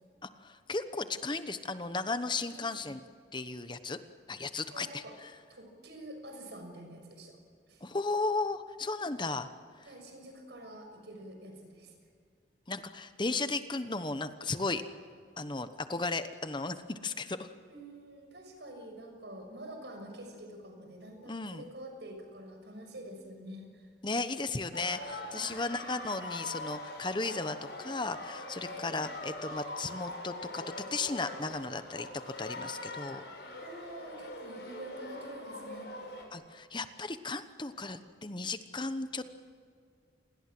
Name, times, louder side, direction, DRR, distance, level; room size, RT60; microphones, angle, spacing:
voice 1, 0.2-3.0 3.3-4.0 4.3-5.3 7.8-9.5 12.7-14.8 15.4-17.5 21.3-21.6 24.0-30.6 30.9-33.2 36.3-39.2, left 3 dB, 25° left, 10 dB, 1.0 m, -35 dB
voice 2, 2.6-2.9 4.7-5.2 5.5-7.4 7.7-7.8 9.8-11.9 17.7-23.9 25.3-25.6 28.7-29.0 33.6-35.9, right 1 dB, 70° right, 4 dB, 6.6 m, -47 dB
sound 1, 24.7-36.2, left 2 dB, 70° left, 6.7 m, -43 dB
29.0 x 21.0 x 7.7 m, 2.1 s
head